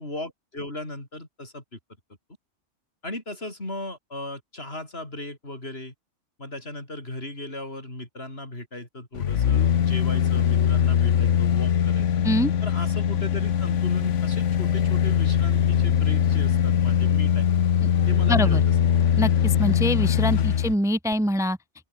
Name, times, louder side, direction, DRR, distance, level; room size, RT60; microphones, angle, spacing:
voice 1, 0.0-1.8 3.0-5.9 6.4-12.1 12.6-17.5 18.1-18.6 20.5-20.6, left 1 dB, 55° left, 6.4 m, -36 dB
sound 1, 9.1-20.7 21.1-21.2, left 9 dB, 75° left, 1.3 m, -21 dB
voice 2, 18.3-18.6 19.2-21.6, equal, 5° right, 1.0 m, -24 dB
open air
omnidirectional pair, 1.3 m